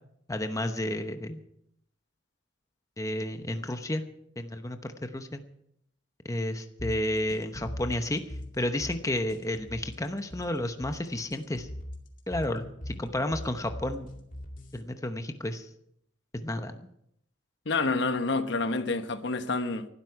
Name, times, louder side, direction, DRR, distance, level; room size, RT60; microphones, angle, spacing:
voice 1, 0.3-1.4 3.0-4.0 4.4-5.4 6.2-8.2 8.6-11.7 12.3-14.1 14.7-15.7 16.3-16.8, left 1 dB, 15° left, 0.9 m, -31 dB
sound 1, 6.8-14.8, left 1 dB, 45° left, 2.3 m, -41 dB
voice 2, 17.7-19.9, left 3 dB, 65° left, 1.1 m, -28 dB
19.0 x 12.5 x 4.8 m
head